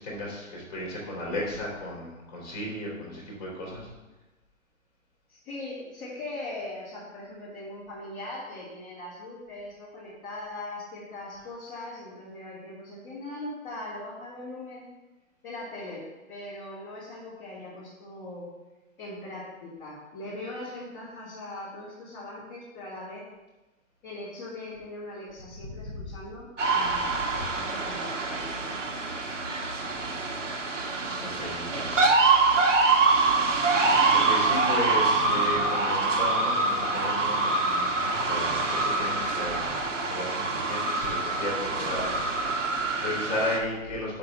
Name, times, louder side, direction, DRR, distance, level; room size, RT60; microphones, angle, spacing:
voice 1, 0.0-3.9 25.8-25.9 26.9-27.0 27.3-27.4 31.2-32.0 34.1-42.3 42.5-44.2, left 1 dB, 30° left, -3 dB, 3.0 m, -34 dB
voice 2, 5.3-14.9 15.4-18.5 19.0-23.2 24.0-27.2 27.6-28.9, left 2 dB, 10° left, -15 dB, 1.9 m, -40 dB
sound 1, 26.6-43.6, right 3 dB, 60° right, 1.5 m, -25 dB
6.0 x 5.2 x 6.8 m, 1.1 s
hypercardioid pair, 170°, 41 cm